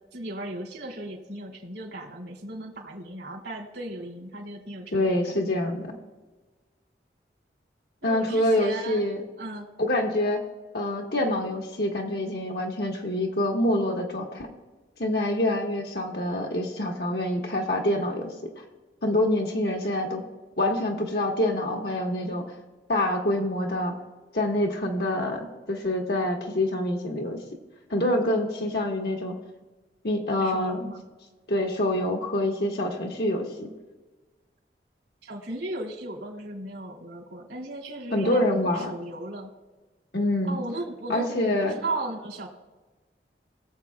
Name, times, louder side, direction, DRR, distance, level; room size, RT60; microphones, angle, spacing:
voice 1, 0.1-5.2 8.0-9.0 9.4-9.7 30.4-31.0 35.2-39.5 40.4-41.3 41.7-42.5, right 2 dB, 90° right, -2 dB, 2.8 m, -36 dB
voice 2, 4.9-5.9 8.0-9.2 9.8-10.4 10.7-14.5 15.0-18.3 19.0-20.2 20.6-22.4 22.9-23.9 24.3-27.4 27.9-29.4 30.0-30.9 31.5-33.7 38.1-38.9 40.1-40.6 41.1-41.8, left 1 dB, 65° left, 1 dB, 1.5 m, -26 dB
21.5 x 7.5 x 2.4 m, 1.2 s
head